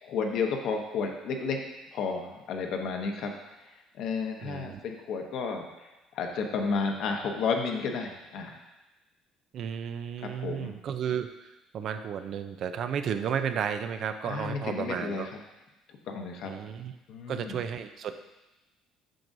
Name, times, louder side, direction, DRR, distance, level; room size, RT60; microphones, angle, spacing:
voice 1, 0.0-1.6 1.9-3.3 3.6-8.6 10.2-10.7 14.3-15.4 15.9-16.5 17.1-17.6, left 5 dB, 70° left, 3 dB, 1.0 m, -32 dB
voice 2, 4.4-4.8 9.5-15.3 16.4-16.9 17.3-18.2, right 8 dB, 55° right, 9 dB, 0.5 m, -33 dB
7.6 x 6.1 x 2.7 m, 1.0 s
cardioid pair, 105°, 0 cm